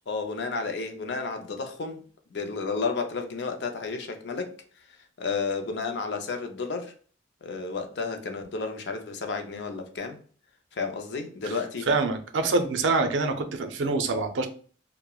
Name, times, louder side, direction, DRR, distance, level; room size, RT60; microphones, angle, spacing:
voice 1, 0.1-2.0 2.3-4.6 4.9-6.9 7.4-10.2 10.7-11.9, left 4 dB, 65° left, 5 dB, 0.4 m, -32 dB
voice 2, 11.9-14.5, right 3 dB, 90° right, 7 dB, 0.4 m, -25 dB
2.9 x 2.1 x 2.2 m, 0.42 s
head